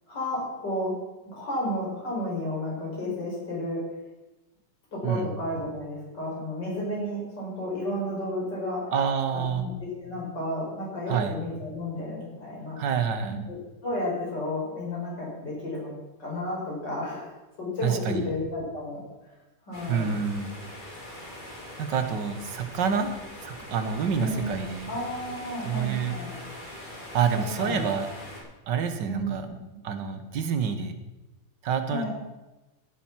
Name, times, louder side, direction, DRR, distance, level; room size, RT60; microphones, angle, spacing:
voice 1, 0.1-1.0 1.3-3.8 4.9-8.9 9.3-12.8 13.3-13.6 13.8-15.9 16.2-17.3 17.6-19.4 19.7-20.2 24.2-24.5 24.9-26.3 27.3-27.9 29.1-29.5 31.9-32.1, left 1 dB, 85° left, -4 dB, 5.6 m, -32 dB
voice 2, 8.9-9.7 11.1-11.4 12.8-13.4 17.8-18.3 19.9-20.5 21.8-23.1 23.4-24.9 25.6-26.2 27.1-28.1 28.7-29.5 29.8-31.0 31.6-32.1, right 6 dB, 90° right, 8 dB, 1.8 m, -27 dB
sound 1, 19.7-28.4, left 1 dB, 25° left, 3.4 m, -42 dB
16.0 x 7.3 x 6.0 m, 1.1 s
omnidirectional pair, 1.8 m